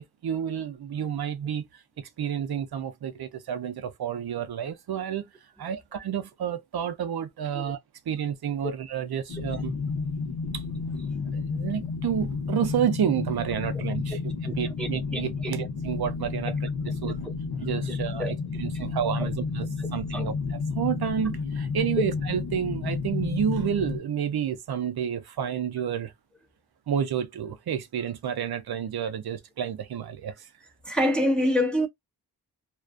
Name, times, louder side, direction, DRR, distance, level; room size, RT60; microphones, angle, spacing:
voice 1, 0.0-5.3 5.6-7.8 8.1-9.7 10.5-10.6 11.3-16.6 16.8-17.2 17.6-26.1 26.9-30.5, right 8 dB, 75° right, 0.5 m, -30 dB
sound 1, 9.3-24.0, left 4 dB, 80° left, 0.7 m, -31 dB
voice 2, 14.5-15.5 17.2-17.3 18.2-18.3 19.2-19.3 20.1-20.3 30.9-31.9, equal, 5° left, 0.4 m, -27 dB
2.3 x 2.2 x 2.4 m
wide cardioid pair, 95°, 37 cm